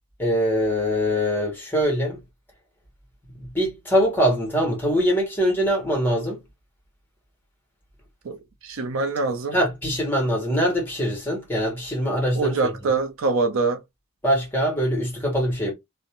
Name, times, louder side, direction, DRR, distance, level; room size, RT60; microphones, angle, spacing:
voice 1, 0.2-2.2 3.4-6.4 9.5-12.7 14.2-15.7, equal, 10° left, 1.0 m, -23 dB
voice 2, 8.6-9.6 12.3-13.8, right 4 dB, 65° right, 0.5 m, -24 dB
2.5 x 2.1 x 2.8 m
head